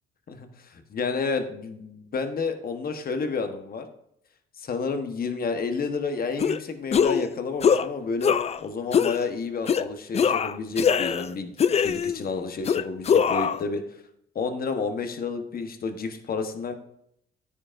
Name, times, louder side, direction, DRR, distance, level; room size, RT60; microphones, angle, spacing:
voice 1, 0.3-3.9 4.6-8.3 8.6-13.8 14.3-16.7, left 4 dB, 50° left, 7 dB, 1.2 m, -30 dB
sound 1, 6.4-6.6 6.9-7.3 7.6-7.9 8.2-8.6 8.9-9.2 9.7-9.8 10.1-11.3 11.6-12.2 12.6-13.6, left 7 dB, 35° left, 0.4 m, -22 dB
9.9 x 9.6 x 2.6 m, 0.74 s
cardioid pair, 90°, 20 cm